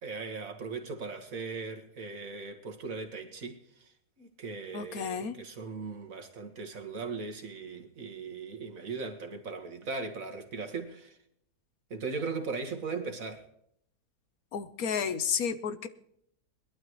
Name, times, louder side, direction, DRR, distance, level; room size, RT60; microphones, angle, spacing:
voice 1, 0.0-3.9 4.2-11.2 11.9-13.4, right 4 dB, 60° right, 2.1 m, -38 dB
voice 2, 4.7-5.4 14.5-15.9, left 6 dB, 70° left, 1.3 m, -32 dB
21.5 x 12.0 x 3.1 m
omnidirectional pair, 1.7 m